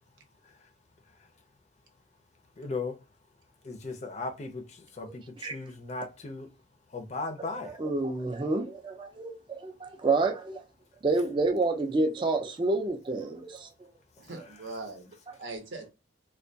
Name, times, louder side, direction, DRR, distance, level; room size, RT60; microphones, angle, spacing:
voice 1, 2.6-3.0 3.6-6.5 6.9-7.8, left 3 dB, 40° left, 0.4 m, -37 dB
voice 2, 7.4-10.6 11.0-13.7, right 3 dB, 25° right, 0.3 m, -29 dB
voice 3, 14.2-15.9, right 3 dB, 85° right, 0.7 m, -41 dB
2.2 x 2.2 x 2.6 m
head